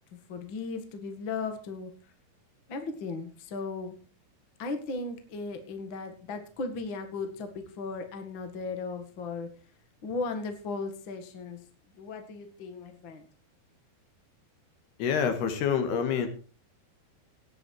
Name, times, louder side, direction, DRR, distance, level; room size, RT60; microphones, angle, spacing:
voice 1, 0.1-1.9 2.7-4.0 4.6-9.5 10.0-11.7 12.0-13.3, left 4 dB, 45° left, 7 dB, 1.8 m, -36 dB
voice 2, 15.0-16.3, left 7 dB, 75° left, 8 dB, 3.6 m, -27 dB
18.0 x 8.5 x 4.7 m, 0.37 s
omnidirectional pair, 4.8 m